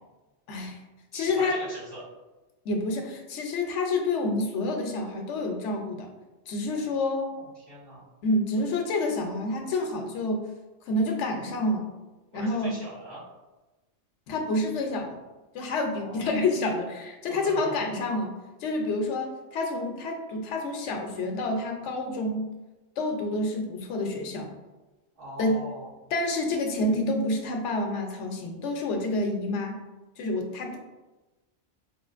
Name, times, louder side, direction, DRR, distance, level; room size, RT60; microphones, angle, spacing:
voice 1, 0.5-0.8 1.1-1.6 2.6-6.1 6.5-7.3 8.2-10.5 10.9-11.9 12.3-12.8 14.3-15.2 15.5-18.3 18.6-22.5 23.0-24.5 25.4-25.6 26.1-29.8 30.2-30.8, left 2 dB, 85° left, 3 dB, 0.9 m, -28 dB
voice 2, 1.1-2.0 6.7-6.9 7.3-8.0 12.3-13.2 16.0-16.4 17.3-17.7 25.2-25.9, right 1 dB, 85° right, -9 dB, 2.0 m, -42 dB
4.2 x 2.4 x 2.4 m, 1.1 s
omnidirectional pair, 1.2 m